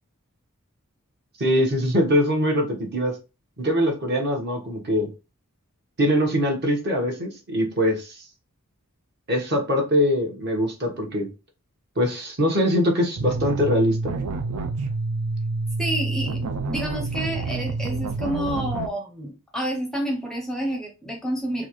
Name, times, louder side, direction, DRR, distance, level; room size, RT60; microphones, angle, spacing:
voice 1, 1.4-3.2 3.6-5.1 6.0-8.2 9.3-11.3 12.0-14.1, equal, 50° right, 1 dB, 1.2 m, -22 dB
sound 1, 13.2-18.9, right 3 dB, 80° right, 0.5 m, -28 dB
voice 2, 15.8-21.7, right 1 dB, ahead, 1 dB, 0.6 m, -29 dB
4.1 x 2.4 x 3.0 m, 0.30 s
head